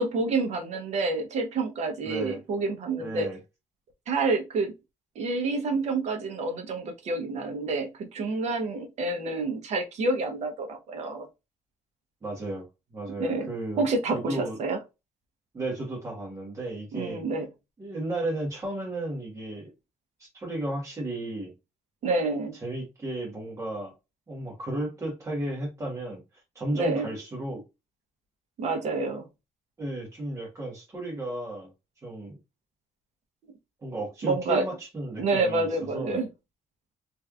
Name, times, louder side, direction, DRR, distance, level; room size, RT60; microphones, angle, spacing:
voice 1, 0.0-3.3 4.1-4.7 5.1-11.3 13.2-13.5 13.8-14.8 16.9-17.5 22.0-22.6 26.7-27.1 28.6-29.3 34.2-34.7 35.2-36.3, right 3 dB, 60° right, 1.0 m, -28 dB
voice 2, 2.0-2.4 3.0-3.4 12.2-12.6 12.9-13.9 14.1-14.6 15.5-17.2 17.8-19.7 20.2-21.5 22.6-23.9 24.3-26.2 26.5-27.6 29.8-31.7 32.0-32.4 33.8-36.2, right 1 dB, 25° right, 1.6 m, -34 dB
3.3 x 3.2 x 2.4 m
cardioid pair, 175°, 13 cm